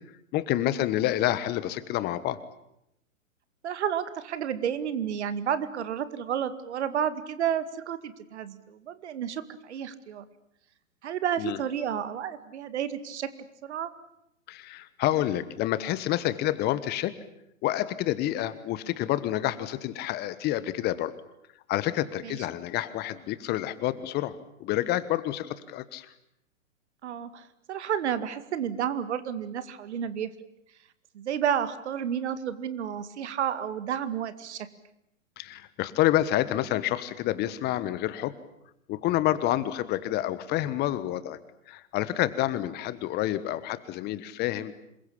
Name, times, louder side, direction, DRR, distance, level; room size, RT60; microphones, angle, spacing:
voice 1, 0.3-2.4 11.4-11.6 14.5-17.2 17.6-21.1 21.7-26.1 35.4-38.3 38.9-41.4 41.7-44.7, left 14 dB, 25° left, 15 dB, 1.3 m, -28 dB
voice 2, 3.6-10.3 11.0-13.3 13.6-13.9 22.2-22.4 27.0-30.3 31.1-34.7, right 9 dB, 55° right, 13 dB, 2.3 m, -31 dB
27.0 x 22.5 x 8.7 m, 0.80 s
figure-of-eight pair, 120°, 40 cm